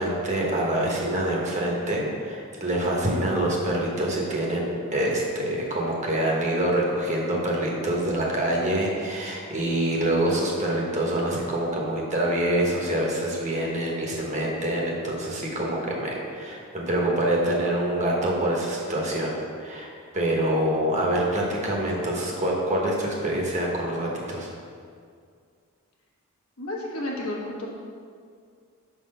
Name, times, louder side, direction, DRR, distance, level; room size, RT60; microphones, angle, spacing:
voice 1, 0.0-4.7 4.9-24.5, right 1 dB, 35° right, -2 dB, 1.0 m, -26 dB
voice 2, 26.6-27.7, left 1 dB, 75° left, -3 dB, 1.2 m, -31 dB
5.8 x 3.9 x 5.3 m, 2.2 s
head